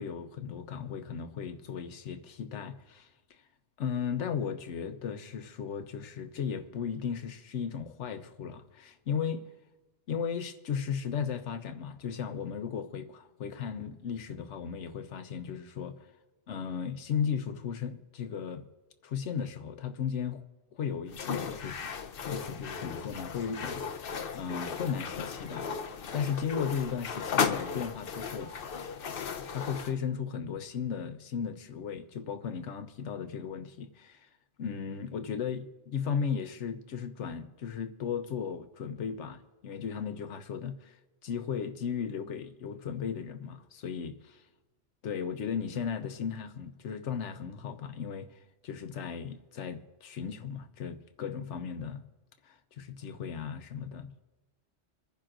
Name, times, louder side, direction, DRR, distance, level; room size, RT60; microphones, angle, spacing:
voice 1, 0.0-3.1 3.8-9.4 10.1-16.1 16.5-18.6 19.0-20.4 20.7-21.8 22.3-25.8 26.1-28.5 29.5-34.3 34.6-41.0 41.2-44.4 45.0-52.0 52.4-54.1, left 7 dB, 80° left, 1.1 m, -36 dB
sound 1, 21.1-29.9, left 6 dB, 55° left, 0.9 m, -35 dB
26.5 x 10.5 x 2.6 m
omnidirectional pair, 1.2 m